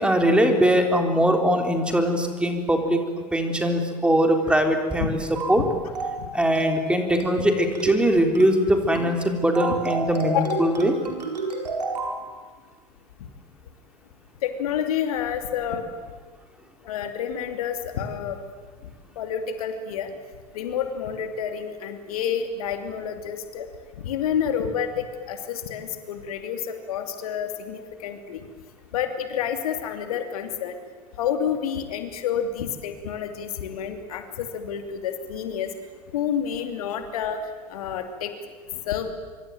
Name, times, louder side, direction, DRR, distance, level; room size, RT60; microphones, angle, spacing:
voice 1, 0.0-3.0 3.3-5.2 5.5-5.7 6.3-11.0, equal, 5° right, 4 dB, 3.7 m, -21 dB
sound 1, 5.4-5.6 6.0-6.2 6.6-6.8 7.2-7.4 7.8-8.0 8.4-8.6 9.0-9.2 9.6-12.2, right 3 dB, 75° right, 4.6 m, -30 dB
voice 2, 10.3-10.7 14.4-15.9 16.8-18.4 19.2-20.1 20.5-23.7 24.0-28.5 28.9-30.8 31.2-35.7 36.1-38.3 38.7-39.1, left 8 dB, 60° left, 7 dB, 2.9 m, -29 dB
25.5 x 25.5 x 9.3 m, 1.5 s
figure-of-eight pair, 90°, 21 cm